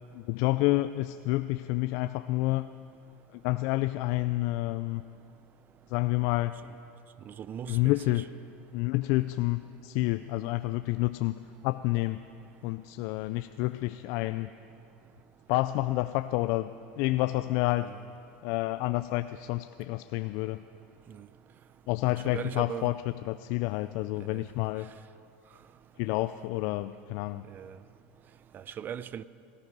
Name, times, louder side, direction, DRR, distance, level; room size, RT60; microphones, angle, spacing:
voice 1, 0.1-2.7 3.3-5.0 5.9-6.6 7.7-8.4 8.7-12.2 12.6-14.5 15.5-17.9 18.4-20.6 21.9-24.9 26.0-27.5, left 19 dB, 65° left, 0.4 m, -29 dB
voice 2, 7.3-7.9 17.8-18.0 21.1-21.3 22.3-22.9 24.3-24.4 27.5-27.8 28.5-29.2, right 9 dB, 35° right, 0.5 m, -39 dB
18.0 x 14.0 x 5.4 m
supercardioid pair, 110°, 6 cm